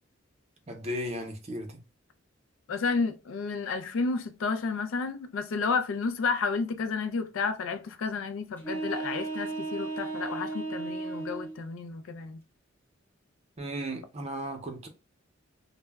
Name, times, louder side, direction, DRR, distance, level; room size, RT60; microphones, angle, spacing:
voice 1, 0.7-1.8 13.6-14.9, equal, 35° right, 0.6 m, -35 dB
voice 2, 2.7-12.4, left 4 dB, 85° left, 0.4 m, -31 dB
sound 1, 8.6-11.6, right 3 dB, 10° left, 0.6 m, -34 dB
2.1 x 2.0 x 3.3 m
head